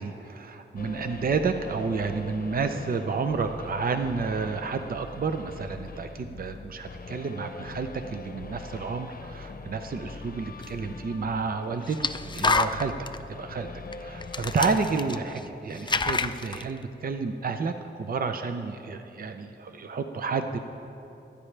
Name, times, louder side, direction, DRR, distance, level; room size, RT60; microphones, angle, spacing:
voice 1, 0.0-12.9 13.4-13.7 14.0-20.6, right 4 dB, 50° right, 7 dB, 0.6 m, -30 dB
sound 1, 0.8-15.0, left 4 dB, 50° left, 0.8 m, -42 dB
sound 2, 10.6-10.7 11.9-13.2 13.9-14.0 14.2-15.5 15.7-16.6, left 3 dB, 25° left, 0.4 m, -28 dB
26.0 x 10.0 x 3.3 m, 2.8 s
wide cardioid pair, 95°, 19 cm